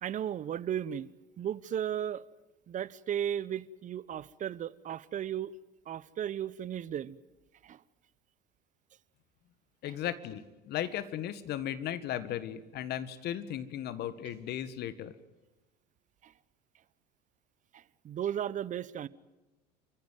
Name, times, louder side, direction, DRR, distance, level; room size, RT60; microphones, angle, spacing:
voice 1, 0.0-1.1 1.4-2.3 2.7-5.5 5.9-7.2 7.6-7.8 9.8-9.9 16.2-16.3 17.7-19.1, right 10 dB, 35° right, 1.0 m, -35 dB
voice 2, 9.8-15.1, left 11 dB, 50° left, 1.8 m, -36 dB
29.0 x 15.0 x 9.3 m
hypercardioid pair, 80°, 21 cm